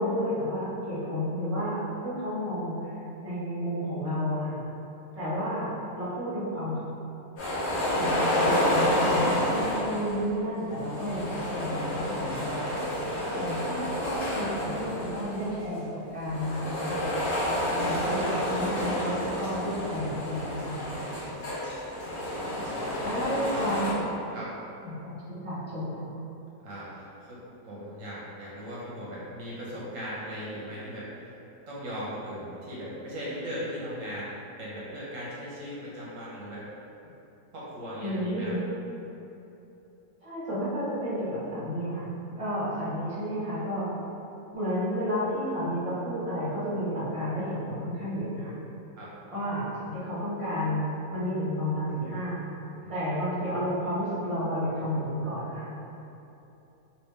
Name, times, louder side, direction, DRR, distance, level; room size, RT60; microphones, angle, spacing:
voice 1, 0.0-2.8 3.2-4.6 5.2-5.7 5.9-6.8 7.9-12.6 13.3-17.0 17.7-20.8 23.0-24.1 24.8-26.0 38.0-38.6 40.2-42.1 42.4-43.9 44.5-48.5 49.3-50.8 51.1-52.4 52.9-55.7, equal, 25° right, -11 dB, 0.8 m, -31 dB
sound 1, 7.4-10.2 10.8-15.6 16.2-23.9, left 1 dB, 50° left, 1.1 m, -29 dB
voice 2, 23.0-23.3 24.3-24.5 26.6-31.3 31.7-36.7 37.5-38.5 49.0-49.1 52.8-52.9, equal, 60° right, -7 dB, 1.1 m, -38 dB
3.3 x 3.0 x 3.2 m, 3.0 s
omnidirectional pair, 1.7 m